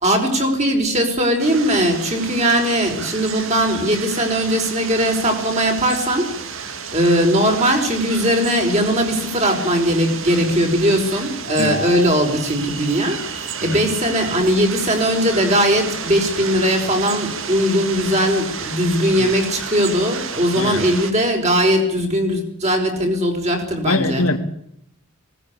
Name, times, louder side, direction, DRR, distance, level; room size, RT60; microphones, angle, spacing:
voice 1, 0.0-6.3 6.6-24.2, equal, 30° right, 3 dB, 5.1 m, -19 dB
sound 1, 1.4-21.1, right 6 dB, 65° right, 2.1 m, -31 dB
voice 2, 20.6-20.9 23.9-24.4, left 2 dB, 80° left, 7 dB, 2.2 m, -22 dB
20.0 x 18.5 x 8.4 m, 0.74 s
head